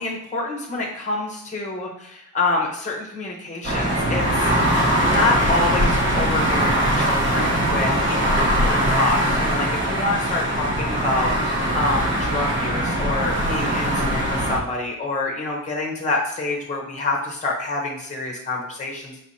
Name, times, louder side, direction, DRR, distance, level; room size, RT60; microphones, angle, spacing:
voice 1, 0.0-4.4 5.1-19.1, left 3 dB, 20° left, -1 dB, 0.9 m, -27 dB
sound 1, 3.6-14.6, right 1 dB, 35° right, 1.0 m, -21 dB
5.4 x 3.0 x 2.7 m, 0.78 s
wide cardioid pair, 145°, 35 cm